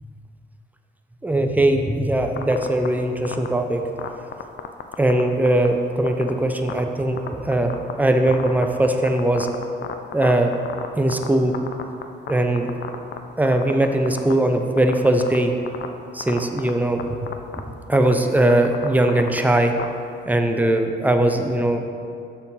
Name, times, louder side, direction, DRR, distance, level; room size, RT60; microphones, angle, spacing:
voice 1, 1.2-3.8 5.0-7.7 8.0-9.5 10.1-10.6 11.0-11.5 12.3-12.7 13.4-15.5 16.1-17.2 17.5-19.7 20.3-21.9, right 1 dB, 10° right, 5 dB, 0.6 m, -20 dB
sound 1, 2.4-2.9 3.2-3.5 4.0-5.2 5.5-5.7 6.1-6.3 6.7-6.8 7.2-7.9 8.3-11.3 11.5-12.3 12.6-13.2 13.5-14.3 14.8-15.4 15.7-15.9 16.2-16.7 17.0-17.1 17.3-17.6 17.9-19.8, left 10 dB, 60° left, 0.5 m, -30 dB
6.8 x 4.5 x 5.6 m, 2.5 s
cardioid pair, 85°, 21 cm